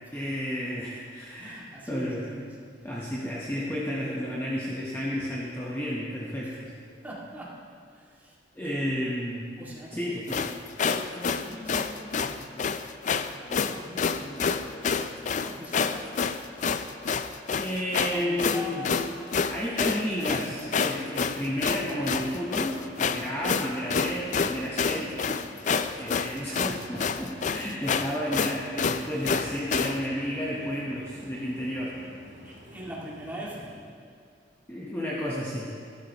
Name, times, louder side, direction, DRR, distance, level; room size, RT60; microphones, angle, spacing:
voice 1, 0.1-2.2 2.8-6.7 8.6-9.5 9.9-10.4 17.6-18.8 19.5-25.1 26.0-32.0 34.7-35.8, equal, 15° left, -5 dB, 0.9 m, -32 dB
voice 2, 1.4-3.0 6.4-6.6 7.0-8.8 9.6-10.1 10.9-12.9 13.2-16.2 18.1-19.4 20.2-20.8 23.2-23.5 31.4-31.8 32.4-34.3 34.5-34.7, equal, 10° right, -6 dB, 2.0 m, -43 dB
sound 1, 10.3-30.0, left 5 dB, 40° left, 0.4 m, -28 dB
sound 2, 21.4-33.7, right 1 dB, 80° right, 1.9 m, -49 dB
13.5 x 12.0 x 3.0 m, 2.2 s
head